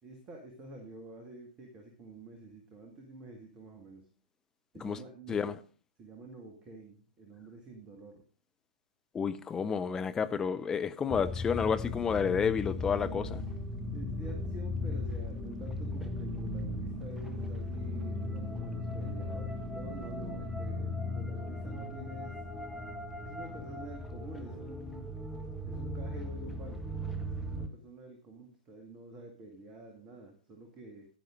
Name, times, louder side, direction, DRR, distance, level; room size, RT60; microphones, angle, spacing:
voice 1, 0.0-4.1 4.7-5.5 6.0-8.2 13.9-22.3 23.2-25.1 25.6-31.1, right 2 dB, 20° right, 2.1 m, -48 dB
voice 2, 9.1-13.4, left 6 dB, 15° left, 0.7 m, -30 dB
sound 1, 11.1-27.7, left 2 dB, 5° right, 1.3 m, -37 dB
10.5 x 10.5 x 3.8 m
figure-of-eight pair, 110°, 5 cm